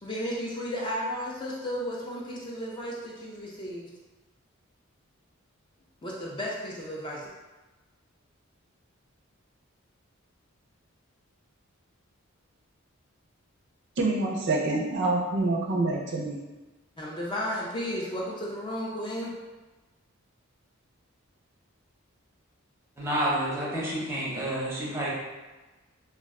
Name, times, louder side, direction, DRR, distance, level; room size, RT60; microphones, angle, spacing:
voice 1, 0.0-3.9 6.0-7.3 17.0-19.4, equal, 20° left, -4 dB, 0.4 m, -33 dB
voice 2, 14.0-16.4, right 2 dB, 55° right, -2 dB, 0.4 m, -26 dB
voice 3, 23.0-25.1, right 1 dB, 10° right, -6 dB, 0.6 m, -29 dB
2.3 x 2.2 x 3.5 m, 1.2 s
head